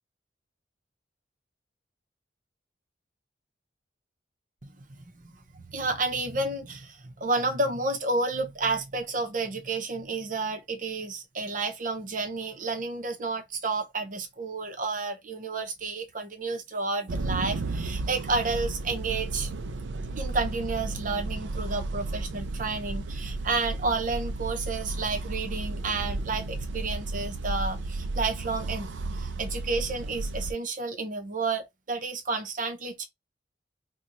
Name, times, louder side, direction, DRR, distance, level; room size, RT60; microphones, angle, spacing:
voice 1, 4.6-19.5 20.2-33.1, right 3 dB, 45° right, 0.8 m, -31 dB
sound 1, 17.1-30.5, right 2 dB, 85° right, 0.5 m, -33 dB
3.9 x 2.3 x 3.0 m
head